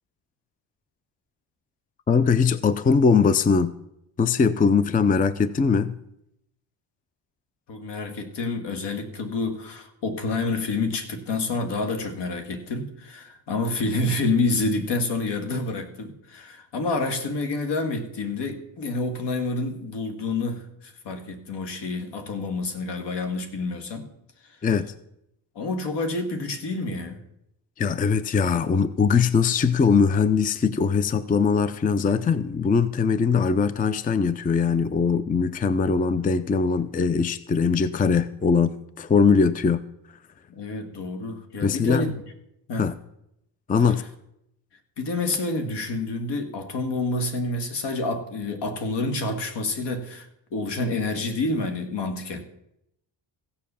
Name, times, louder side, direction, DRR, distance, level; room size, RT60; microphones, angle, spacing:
voice 1, 2.1-3.8 4.2-5.9 24.6-24.9 27.8-39.8 41.6-42.1 42.8-43.0 43.7-44.0, left 5 dB, 20° left, 15 dB, 0.5 m, -21 dB
voice 2, 7.7-24.1 25.6-27.2 40.5-42.1 42.7-42.9 43.8-43.9 45.0-52.4, left 3 dB, 65° left, 7 dB, 2.0 m, -28 dB
15.5 x 7.5 x 6.9 m, 0.80 s
cardioid pair, 110°, 44 cm